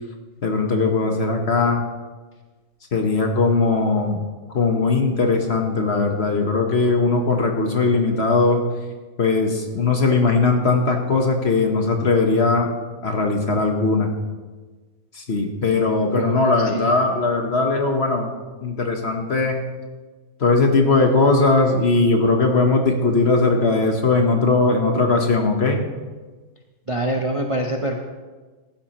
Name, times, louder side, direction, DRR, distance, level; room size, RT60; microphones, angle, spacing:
voice 1, 0.4-1.8 2.9-4.2 4.5-8.6 9.2-12.7 13.0-14.1 15.1-18.3 18.6-19.6 20.4-25.8, left 3 dB, 40° left, 3 dB, 1.2 m, -19 dB
voice 2, 16.1-16.9 26.9-28.0, right 1 dB, 35° right, 2 dB, 0.5 m, -25 dB
15.0 x 12.0 x 3.0 m, 1.3 s
omnidirectional pair, 1.8 m